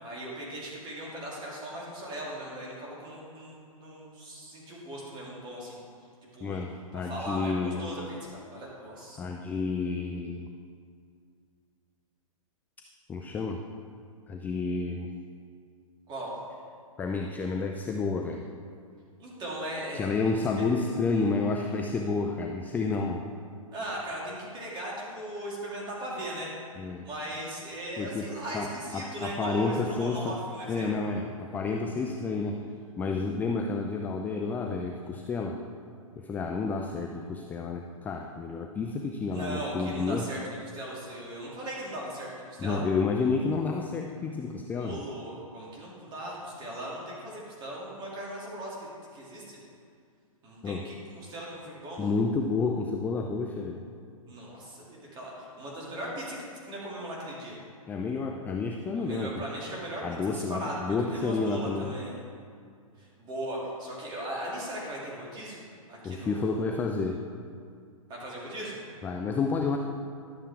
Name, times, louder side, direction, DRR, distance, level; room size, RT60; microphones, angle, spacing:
voice 1, 0.0-5.8 6.3-6.6 6.9-9.2 16.1-16.3 19.2-20.1 20.6-20.8 23.7-26.5 27.0-31.1 39.3-42.8 44.7-48.9 49.1-49.6 50.4-52.0 54.3-56.4 56.6-57.6 59.0-60.0 60.3-60.8 61.1-62.2 63.0-65.6 65.9-66.5 68.1-68.8, right 1 dB, 25° right, -4 dB, 2.6 m, -38 dB
voice 2, 6.4-7.9 9.2-10.5 13.1-13.6 14.3-15.1 17.0-18.4 19.9-23.2 26.8-27.1 28.0-30.4 30.7-32.7 33.0-35.6 36.2-40.3 42.6-45.1 50.6-50.9 52.0-53.8 57.9-59.4 60.0-62.0 66.0-67.2 69.0-69.8, left 4 dB, 10° left, 3 dB, 0.3 m, -30 dB
11.5 x 7.1 x 3.5 m, 2.3 s
hypercardioid pair, 120°, 18 cm